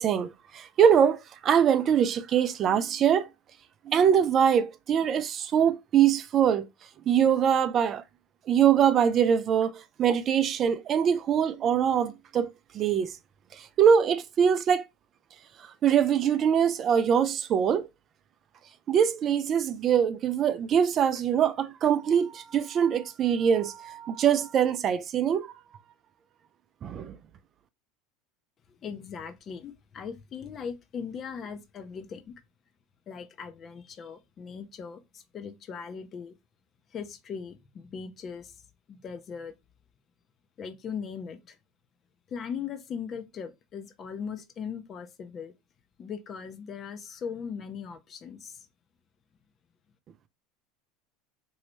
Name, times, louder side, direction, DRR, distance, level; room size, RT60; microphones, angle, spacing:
voice 1, 0.0-3.3 3.9-6.6 7.1-8.0 8.5-12.5 12.7-13.1 13.6-14.8 15.8-17.9 18.9-25.5 26.8-27.2, right 8 dB, 40° right, 0.4 m, -23 dB
voice 2, 28.8-32.3 33.1-36.3 36.9-38.5 38.9-39.5 40.6-41.6 42.3-45.5 46.0-48.6, left 6 dB, 35° left, 0.6 m, -39 dB
3.0 x 2.7 x 3.0 m
supercardioid pair, 105°, 0 cm